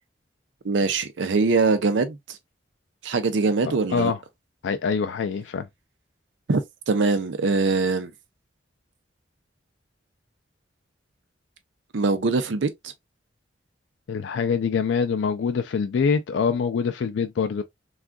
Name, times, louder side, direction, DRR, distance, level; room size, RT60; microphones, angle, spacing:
voice 1, 0.6-2.4 3.0-4.1 6.5-6.6 6.9-8.1 11.9-12.9, right 4 dB, 85° right, 0.5 m, -22 dB
voice 2, 3.6-4.2 4.6-5.7 14.1-17.6, left 5 dB, 80° left, 0.3 m, -25 dB
3.5 x 2.4 x 2.2 m
head